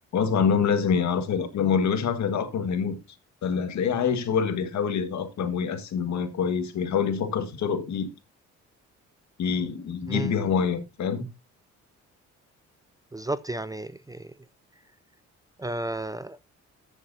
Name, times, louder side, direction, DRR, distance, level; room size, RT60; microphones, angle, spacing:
voice 1, 0.1-3.0 3.4-8.1 9.4-11.2, left 6 dB, 65° left, 1.8 m, -26 dB
voice 2, 13.1-14.3 15.6-16.4, right 2 dB, 10° right, 0.4 m, -32 dB
14.0 x 7.2 x 2.8 m
cardioid pair, 90°, 30 cm